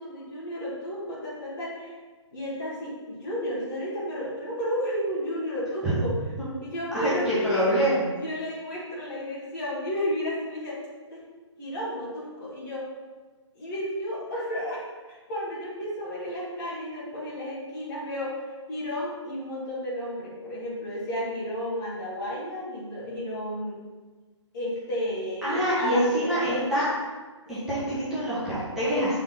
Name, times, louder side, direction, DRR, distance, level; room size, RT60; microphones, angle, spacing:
voice 1, 0.0-1.9 2.3-6.1 6.6-7.7 8.1-10.8 11.1-11.2 11.6-12.9 13.6-23.8 24.5-26.7 27.7-27.8 28.9-29.2, equal, 40° left, -8 dB, 2.0 m, -32 dB
voice 2, 6.9-8.0 25.4-26.9 27.5-29.2, equal, 5° right, -13 dB, 1.6 m, -25 dB
6.2 x 4.3 x 3.9 m, 1.3 s
hypercardioid pair, 150°, 16 cm